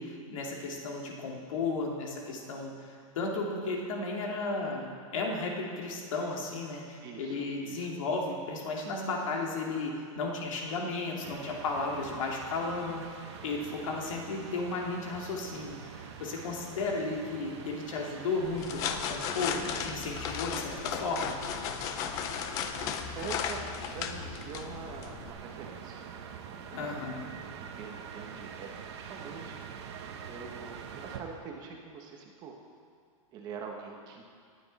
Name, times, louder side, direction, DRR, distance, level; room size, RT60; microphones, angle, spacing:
voice 1, 0.0-2.7 3.1-13.0 13.4-21.4 26.7-27.3, left 3 dB, 65° left, -1 dB, 2.5 m, -34 dB
voice 2, 7.0-7.9 22.6-26.0 26.8-27.1 27.4-29.6 30.3-32.6 33.3-34.2, right 5 dB, 20° right, 1 dB, 1.0 m, -44 dB
sound 1, 11.2-31.2, right 7 dB, 50° right, 1.1 m, -46 dB
sound 2, 18.4-25.3, left 8 dB, 20° left, 0.4 m, -35 dB
19.0 x 9.6 x 4.1 m, 2.1 s
supercardioid pair, 170°, 18 cm